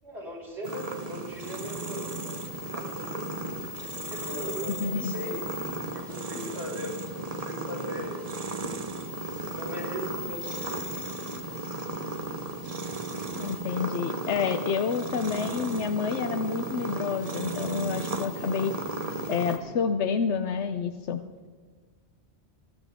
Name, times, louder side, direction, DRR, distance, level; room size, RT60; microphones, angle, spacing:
voice 1, 0.0-2.4 2.7-3.3 3.8-5.5 5.9-8.3 9.4-10.8, equal, 75° right, -5 dB, 6.4 m, -39 dB
sound 1, 0.6-19.6, right 2 dB, 35° right, 1.1 m, -35 dB
voice 2, 4.8-5.1 13.4-18.7 19.3-21.2, left 6 dB, 90° left, 6 dB, 1.0 m, -29 dB
23.5 x 12.0 x 3.6 m, 1.5 s
omnidirectional pair, 1.1 m